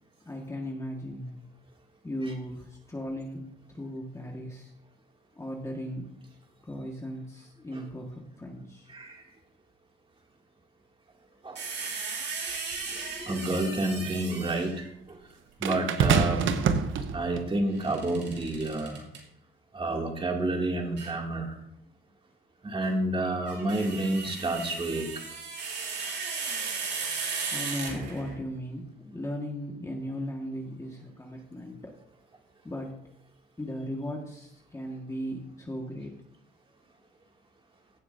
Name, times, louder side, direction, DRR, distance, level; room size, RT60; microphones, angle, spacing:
voice 1, 0.2-1.3 2.0-3.5 3.7-4.7 5.3-6.1 6.6-8.9 11.6-11.7 12.6-13.7 14.0-14.1 27.5-31.9 32.6-32.9 33.6-36.1, equal, 15° left, 0 dB, 1.6 m, -37 dB
voice 2, 8.9-9.2 11.4-11.6 13.3-15.2 15.6-16.7 17.1-19.0 19.7-21.5 22.6-25.1, right 2 dB, 25° right, 1 dB, 2.5 m, -29 dB
sound 1, 11.6-14.9 17.7-19.2 21.0-21.2 23.3-28.4, right 4 dB, 60° right, 2.8 m, -36 dB
sound 2, 12.7-12.8 15.6-17.5 18.4-18.6, right 6 dB, 75° right, 0.9 m, -26 dB
16.0 x 7.6 x 2.7 m, 0.76 s
cardioid pair, 90°, 20 cm